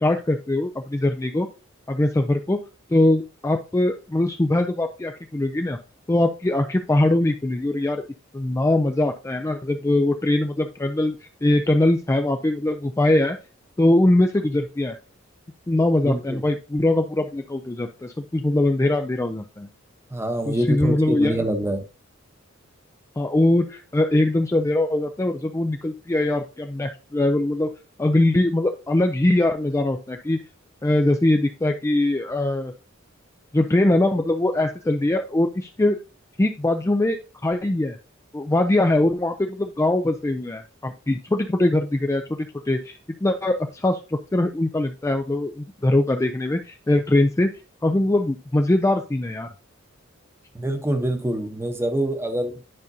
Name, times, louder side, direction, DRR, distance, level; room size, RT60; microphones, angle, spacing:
voice 1, 0.0-1.5 1.9-2.6 2.9-5.8 6.1-8.0 8.3-11.2 11.4-13.4 13.8-15.0 15.7-19.7 20.5-21.4 23.2-27.7 28.0-30.4 30.8-32.7 33.5-36.0 36.4-37.2 37.4-38.0 38.3-42.2 42.7-47.5 47.8-49.5, left 1 dB, 15° left, 0.4 m, -22 dB
voice 2, 16.0-16.4 20.1-21.8 50.5-52.7, right 1 dB, 15° right, 0.9 m, -25 dB
11.0 x 5.1 x 2.7 m
head